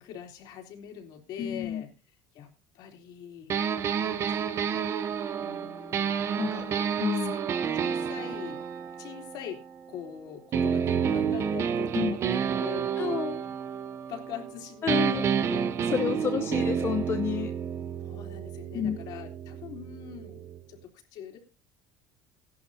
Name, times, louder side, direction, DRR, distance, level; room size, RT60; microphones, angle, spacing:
voice 1, 0.0-1.9 2.3-2.5 2.7-3.5 4.0-4.9 5.4-6.9 7.2-7.3 7.8-8.6 9.0-9.6 9.9-12.2 12.6-13.2 13.4-13.5 14.1-15.7 18.0-21.4, left 9 dB, 55° left, 3 dB, 3.4 m, -43 dB
voice 2, 1.4-1.8 6.4-6.6 7.0-7.4 11.9-12.2 13.0-13.4 14.8-15.2 15.8-17.5 18.7-19.0, left 8 dB, 30° left, 7 dB, 0.8 m, -30 dB
sound 1, 3.5-10.0 10.5-14.5 14.9-20.6, right 7 dB, 35° right, 0.9 m, -30 dB
17.0 x 11.5 x 2.8 m, 0.32 s
cardioid pair, 160°, 8 cm